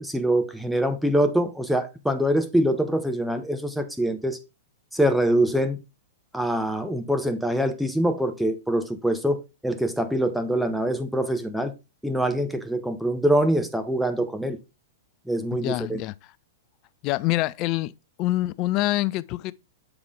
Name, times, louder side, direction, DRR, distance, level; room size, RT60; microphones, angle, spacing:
voice 1, 0.0-4.4 4.9-5.8 6.3-11.7 12.0-14.6 15.3-16.0, right 1 dB, ahead, 0.6 m, -24 dB
voice 2, 15.5-16.3 17.0-17.9 18.2-19.5, left 17 dB, 40° left, 0.4 m, -26 dB
7.2 x 4.8 x 3.6 m
hypercardioid pair, 110°, 0 cm